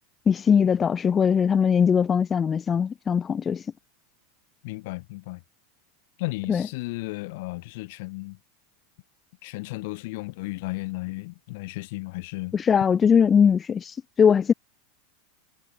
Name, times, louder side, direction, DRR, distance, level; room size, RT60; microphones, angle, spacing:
voice 1, 0.3-3.6 6.5-6.6 12.5-13.9 14.2-14.5, left 7 dB, 25° left, 0.5 m, -20 dB
voice 2, 4.6-5.4 6.2-8.4 9.4-12.5, left 23 dB, 65° left, 0.7 m, -34 dB
hypercardioid pair, 110°, 0 cm